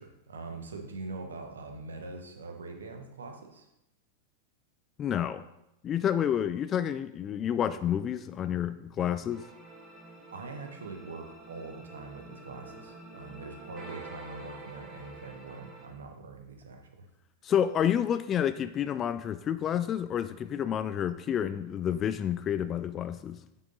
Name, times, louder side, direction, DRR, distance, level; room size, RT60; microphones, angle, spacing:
voice 1, 0.0-3.7 10.3-17.1, right 3 dB, 70° right, 4 dB, 1.1 m, -43 dB
voice 2, 5.0-5.4 5.8-9.4 17.4-23.4, left 9 dB, 30° left, 13 dB, 0.3 m, -29 dB
sound 1, 9.3-15.9, right 2 dB, 25° right, 2.0 m, -47 dB
7.8 x 6.3 x 3.9 m, 0.86 s
figure-of-eight pair, 90°, 0 cm